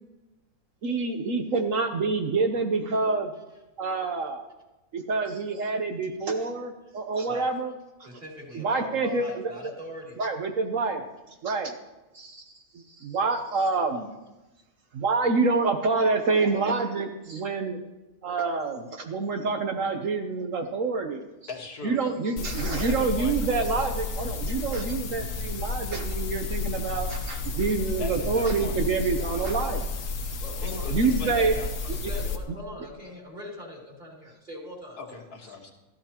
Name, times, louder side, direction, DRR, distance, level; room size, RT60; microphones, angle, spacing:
voice 1, 0.8-3.3 3.8-4.5 4.9-7.7 8.5-9.5 10.2-11.0 11.4-11.7 12.1-14.1 14.9-17.8 18.2-21.3 21.8-29.8 30.9-31.5 32.0-32.1, right 4 dB, 60° right, 4 dB, 1.2 m, -27 dB
voice 2, 8.0-10.2 19.0-19.1 30.4-31.6 32.1-35.0, left 1 dB, 30° right, -3 dB, 3.5 m, -41 dB
voice 3, 21.5-22.0 22.8-23.4 28.0-29.6 30.6-31.7 35.0-35.7, left 4 dB, 85° left, 0 dB, 2.1 m, -39 dB
sound 1, 22.4-32.4, left 3 dB, 60° left, 1.3 m, -31 dB
15.5 x 14.0 x 2.9 m, 1.0 s
omnidirectional pair, 1.6 m